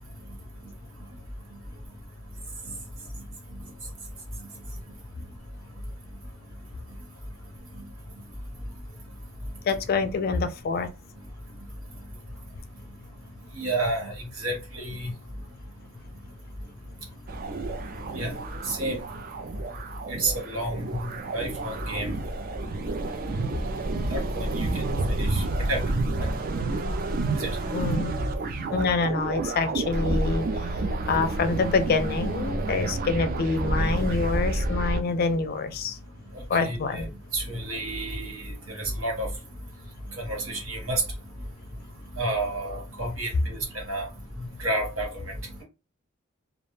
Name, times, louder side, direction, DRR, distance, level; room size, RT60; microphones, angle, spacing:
voice 1, 9.7-10.9 27.7-28.1 28.7-30.5 31.1-35.9 36.5-37.1, left 4 dB, 50° left, 0.3 m, -26 dB
voice 2, 13.5-15.1 18.1-18.3 18.6-19.0 20.2-20.8 21.3-22.1 24.1-24.8 25.2-25.4 25.7-25.8 26.2-26.3 27.4-27.5 36.6-39.3 40.2-41.0 42.1-43.6 43.9-44.1 44.6-45.1, right 2 dB, 80° right, 1.2 m, -30 dB
sound 1, 17.3-35.0, right 2 dB, 45° right, 0.3 m, -29 dB
2.3 x 2.1 x 3.1 m
head